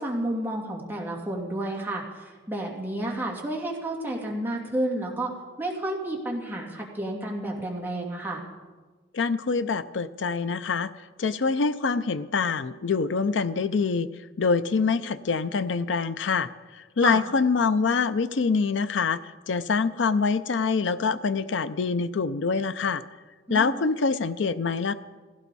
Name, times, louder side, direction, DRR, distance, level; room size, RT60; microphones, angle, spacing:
voice 1, 0.0-5.3 5.6-8.4 17.0-17.2 23.5-23.8, right 1 dB, 10° right, -2 dB, 2.6 m, -31 dB
voice 2, 9.1-10.9 11.2-14.1 14.4-23.0 23.5-24.9, left 5 dB, 70° left, 13 dB, 0.5 m, -25 dB
16.5 x 16.0 x 4.1 m, 1.4 s
head